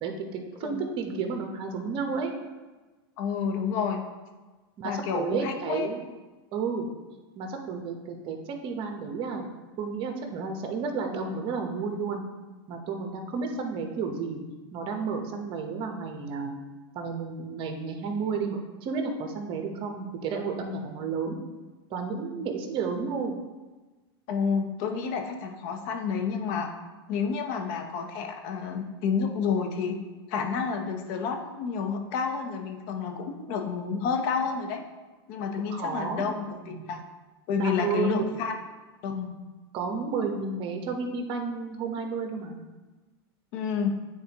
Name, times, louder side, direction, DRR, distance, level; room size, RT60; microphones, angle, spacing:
voice 1, 0.0-2.3 4.8-6.0 6.5-6.9 7.4-9.5 9.8-12.2 12.7-14.4 14.7-16.5 16.9-21.4 21.9-23.4 35.7-36.2 36.6-37.0 37.6-38.3 39.7-42.6, right 5 dB, 40° right, 3 dB, 1.1 m, -32 dB
voice 2, 3.2-4.1 4.8-5.9 24.3-26.7 27.1-30.0 30.3-34.8 35.3-37.0 37.5-38.6 39.0-39.4 43.5-43.9, left 6 dB, 50° left, 4 dB, 0.9 m, -29 dB
9.2 x 4.1 x 3.0 m, 1.2 s
hypercardioid pair, 125°, 13 cm